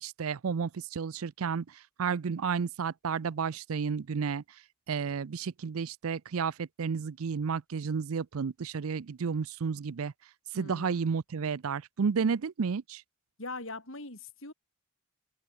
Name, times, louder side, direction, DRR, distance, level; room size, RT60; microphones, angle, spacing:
voice 1, 0.0-1.6 2.0-4.4 4.9-10.1 10.5-13.0, right 6 dB, 75° right, 0.5 m, -32 dB
voice 2, 10.5-11.0 13.4-14.5, left 3 dB, 60° left, 4.8 m, -41 dB
head